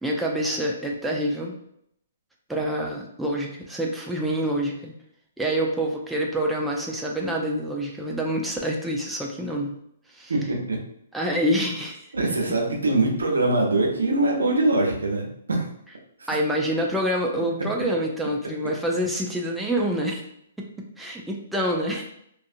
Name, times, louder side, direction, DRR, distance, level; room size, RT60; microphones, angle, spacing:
voice 1, 0.0-1.6 2.5-4.9 5.4-9.7 10.1-10.3 11.1-12.1 16.3-20.2 21.0-22.1, right 1 dB, 5° right, -2 dB, 0.4 m, -26 dB
voice 2, 10.3-10.8 12.1-15.7 16.2-16.3, right 2 dB, 85° right, 0 dB, 0.7 m, -23 dB
2.5 x 2.4 x 2.5 m, 0.73 s
hypercardioid pair, 135°, 0 cm